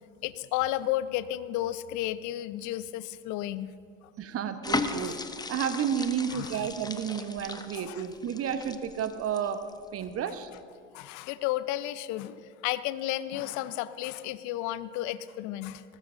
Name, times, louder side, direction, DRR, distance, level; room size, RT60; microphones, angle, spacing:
voice 1, 0.2-3.7 5.0-5.2 6.3-6.6 7.8-8.0 10.9-15.8, left 14 dB, 50° left, 15 dB, 0.8 m, -33 dB
voice 2, 4.2-5.1 5.5-9.6 9.9-10.5, right 8 dB, 35° right, 10 dB, 1.1 m, -31 dB
sound 1, 4.6-10.0 10.4-10.6, left 3 dB, 10° left, 1.0 m, -36 dB
21.5 x 19.0 x 2.6 m, 2.3 s
hypercardioid pair, 75°, 38 cm